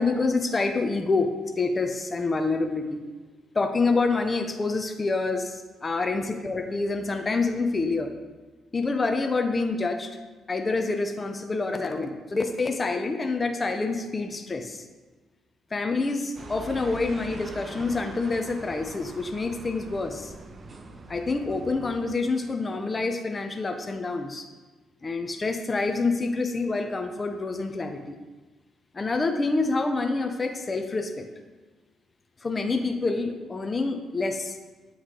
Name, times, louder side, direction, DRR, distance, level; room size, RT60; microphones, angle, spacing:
voice 1, 0.0-1.3 1.6-3.0 3.5-8.1 8.7-10.1 10.5-14.8 15.7-20.3 21.1-24.5 25.0-28.2 28.9-31.3 32.4-34.6, left 3 dB, 30° left, 5 dB, 0.5 m, -27 dB
sound 1, 16.4-22.2, right 3 dB, 35° right, 0.5 m, -42 dB
8.1 x 3.1 x 3.7 m, 1.3 s
cardioid pair, 90°, 0 cm